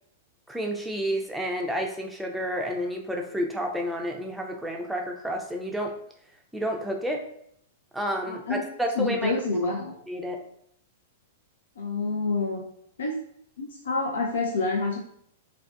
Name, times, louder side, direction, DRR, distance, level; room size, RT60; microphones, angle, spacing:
voice 1, 0.5-6.0 6.5-7.2 7.9-9.4 10.1-10.4, equal, 5° right, 1 dB, 0.4 m, -30 dB
voice 2, 8.2-8.6 9.0-9.9 11.8-12.7 13.0-13.2 13.6-15.0, left 3 dB, 70° left, 0 dB, 0.4 m, -27 dB
2.4 x 2.1 x 2.4 m, 0.68 s
figure-of-eight pair, 105°, 0 cm